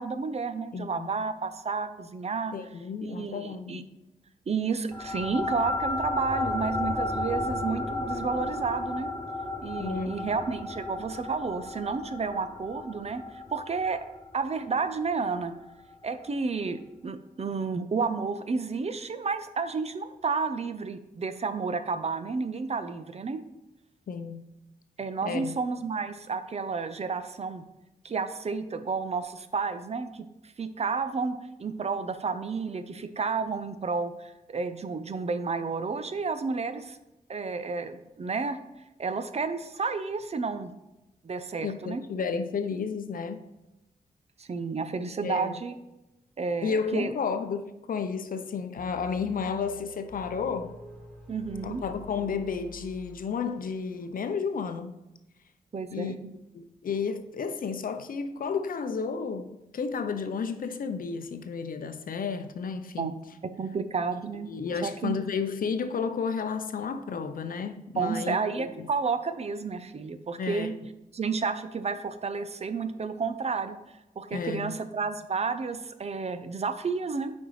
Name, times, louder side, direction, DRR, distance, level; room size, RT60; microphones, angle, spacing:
voice 1, 0.0-2.5 3.0-3.8 4.5-9.1 9.6-14.0 14.3-15.5 16.0-23.4 25.0-27.6 28.0-30.3 30.6-37.0 37.3-38.6 39.0-40.7 41.2-42.0 44.4-45.7 46.4-47.1 51.3-51.8 55.7-56.3 63.0-63.1 63.6-64.5 64.8-65.1 68.0-70.7 71.1-73.8 74.2-77.3, right 4 dB, 45° right, 0.6 m, -31 dB
voice 2, 0.7-1.1 2.5-3.9 9.8-10.2 24.1-24.4 25.2-25.6 41.6-43.4 45.2-45.6 46.6-50.7 51.6-55.0 55.9-56.2 56.5-63.2 64.5-68.9 70.4-70.7 74.3-74.8, left 5 dB, 65° left, 0.6 m, -32 dB
sound 1, 4.9-15.7, left 2 dB, 25° left, 0.9 m, -34 dB
sound 2, 48.8-53.8, left 1 dB, 5° left, 1.6 m, -47 dB
8.6 x 5.3 x 3.2 m
cardioid pair, 85°, 15 cm